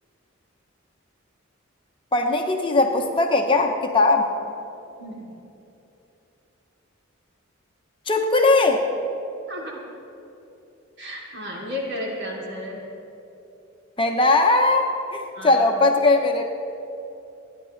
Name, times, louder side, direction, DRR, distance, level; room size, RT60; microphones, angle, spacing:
voice 1, 2.1-4.3 8.1-8.8 14.0-16.5, left 2 dB, 25° left, 3 dB, 0.9 m, -19 dB
voice 2, 5.0-5.3 9.5-9.8 11.0-12.8 15.3-15.7, left 1 dB, 60° right, -3 dB, 3.1 m, -33 dB
28.5 x 10.5 x 3.2 m, 2.9 s
head